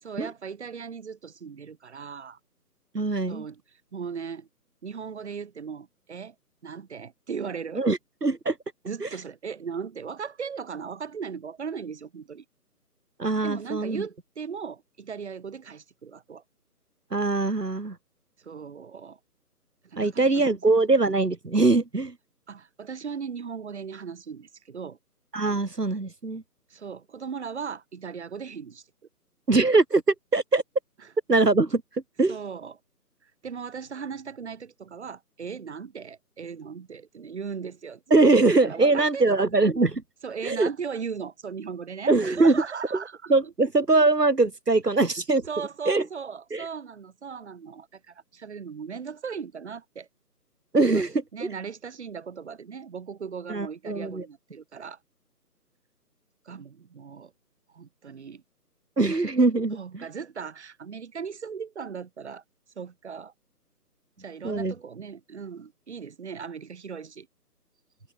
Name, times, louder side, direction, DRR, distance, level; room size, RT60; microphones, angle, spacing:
voice 1, 0.0-2.4 3.3-3.6 3.9-4.5 4.8-6.3 6.6-7.8 8.9-12.4 13.4-16.4 18.4-19.2 19.8-20.4 22.5-25.0 26.7-28.8 32.3-32.8 33.2-38.2 38.6-39.5 40.2-43.5 45.5-50.1 50.8-51.0 51.3-55.0 56.4-57.3 57.7-58.4 59.7-62.4 62.8-63.3 64.2-67.3, right 6 dB, 45° right, 4.6 m, -38 dB
voice 2, 2.9-3.4 7.8-8.6 9.0-9.1 13.2-14.0 17.1-18.0 20.0-22.1 25.3-26.4 29.5-30.6 31.3-32.4 38.1-40.0 40.4-40.7 42.1-42.6 42.9-43.0 43.3-45.5 45.8-46.0 46.5-46.7 50.7-51.5 53.5-54.3 59.0-60.1 64.4-64.7, right 3 dB, 80° right, 3.1 m, -22 dB
figure-of-eight pair, 150°, 47 cm